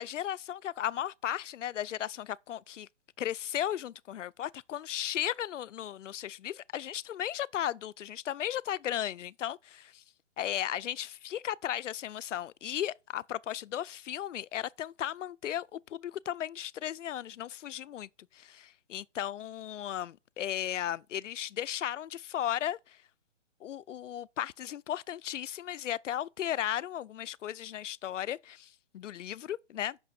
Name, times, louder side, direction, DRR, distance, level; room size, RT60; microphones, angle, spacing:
voice 1, 0.0-2.9 3.2-10.0 10.4-23.0 23.6-30.0, left 11 dB, 85° left, 0.5 m, -35 dB
8.5 x 6.0 x 4.2 m
hypercardioid pair, 150°, 36 cm